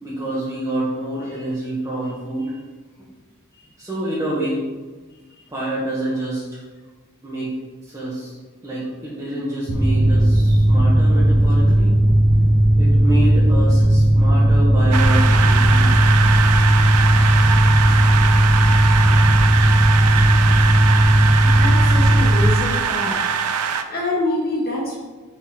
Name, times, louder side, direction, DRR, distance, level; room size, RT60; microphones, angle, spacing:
voice 1, 0.0-2.5 3.8-4.6 5.5-6.6 7.2-7.5 7.8-8.3 8.6-12.0 12.8-16.0, right 1 dB, 15° right, -9 dB, 1.4 m, -27 dB
Mechanical fan, 9.7-22.5, right 1 dB, 40° right, 1.1 m, -15 dB
sound 1, 14.9-23.8, right 7 dB, 85° right, 0.5 m, -22 dB
voice 2, 21.4-23.2 23.5-25.0, left 2 dB, 45° left, -5 dB, 2.0 m, -26 dB
5.9 x 4.2 x 4.4 m, 1.3 s
head